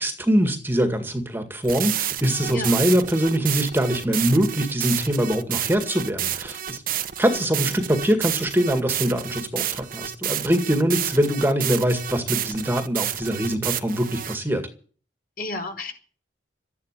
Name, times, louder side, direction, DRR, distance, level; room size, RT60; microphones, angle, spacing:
voice 1, 0.0-6.8 7.2-14.7, equal, 10° right, 1.9 m, -23 dB
sound 1, 1.6-14.4, right 11 dB, 50° right, 1.2 m, -30 dB
voice 2, 2.5-2.8 7.3-7.7 15.4-15.9, left 2 dB, 55° left, 4.8 m, -33 dB
13.5 x 10.5 x 9.8 m
head